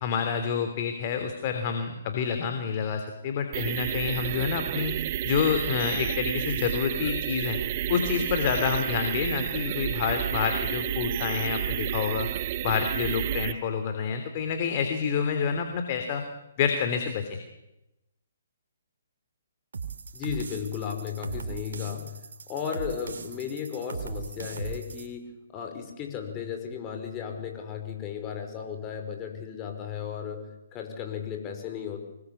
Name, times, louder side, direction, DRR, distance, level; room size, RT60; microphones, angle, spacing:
voice 1, 0.0-4.9 5.2-7.6 7.9-12.3 12.6-16.2 16.6-17.4, left 6 dB, 40° left, 6 dB, 3.1 m, -28 dB
sound 1, 3.5-13.5, right 12 dB, 40° right, 1.0 m, -31 dB
sound 2, 19.7-25.1, right 5 dB, 70° right, 3.3 m, -39 dB
voice 2, 20.1-22.1 22.5-32.0, left 8 dB, 25° left, 4 dB, 5.4 m, -35 dB
25.0 x 20.5 x 8.6 m, 0.94 s
hypercardioid pair, 140°, 0 cm